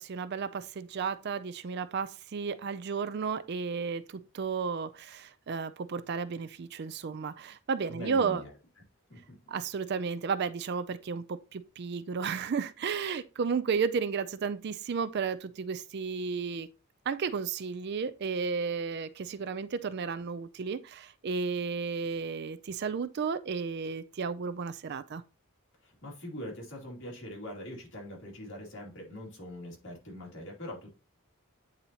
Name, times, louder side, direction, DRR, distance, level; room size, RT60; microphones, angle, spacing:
voice 1, 0.0-8.4 9.5-16.7 17.1-25.2, right 5 dB, 50° right, 0.4 m, -33 dB
voice 2, 7.9-8.5 9.1-9.4 25.8-31.0, left 1 dB, 60° left, 2.5 m, -42 dB
8.8 x 4.0 x 2.8 m
head